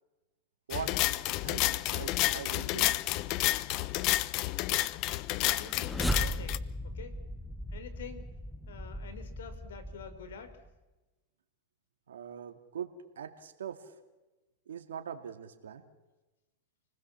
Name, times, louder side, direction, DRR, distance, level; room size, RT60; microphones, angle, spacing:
sound 1, 0.7-6.6, left 17 dB, 50° left, 0.9 m, -30 dB
voice 1, 1.4-2.9 12.1-12.9 13.2-13.9 14.7-15.8, right 8 dB, 90° right, 6 dB, 2.3 m, -41 dB
voice 2, 5.3-7.2 7.7-8.3 8.7-10.6, left 6 dB, 85° left, 11 dB, 4.2 m, -47 dB
sound 2, 5.4-10.7, equal, 5° left, 1.0 m, -37 dB
29.5 x 20.0 x 7.3 m, 1.1 s
hypercardioid pair, 120°, 0 cm